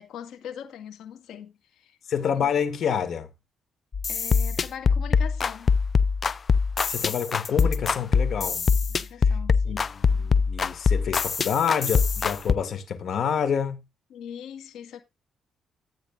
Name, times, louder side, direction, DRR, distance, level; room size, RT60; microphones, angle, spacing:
voice 1, 0.0-2.0 2.3-2.5 4.1-5.8 8.9-9.9 14.1-15.0, left 9 dB, 80° left, 2.0 m, -41 dB
voice 2, 2.1-3.3 6.9-8.7 9.7-9.8 10.2-13.8, left 7 dB, 60° left, 1.9 m, -27 dB
sound 1, 3.9-12.5, left 5 dB, 40° left, 0.5 m, -23 dB
13.0 x 8.9 x 2.5 m
cardioid pair, 90°, 0 cm